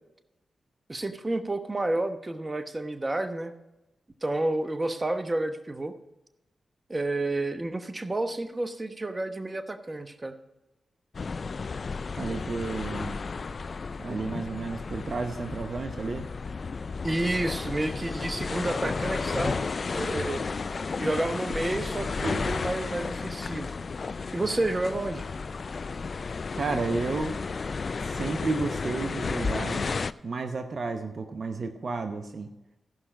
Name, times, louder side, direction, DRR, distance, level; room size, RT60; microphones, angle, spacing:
voice 1, 0.9-3.5 4.2-5.9 6.9-10.4 17.0-20.4 21.0-23.7 24.3-25.2, right 2 dB, 30° right, 9 dB, 1.0 m, -30 dB
sound 1, 11.1-30.1, left 4 dB, 55° left, 0.3 m, -33 dB
voice 2, 12.2-13.2 14.0-16.3 26.5-27.4 28.0-30.0 30.2-32.5, right 3 dB, 60° right, 7 dB, 0.8 m, -32 dB
sound 2, 21.1-25.4, right 1 dB, 85° right, 4.5 m, -42 dB
14.5 x 5.7 x 5.1 m, 0.97 s
supercardioid pair, 45°, 0 cm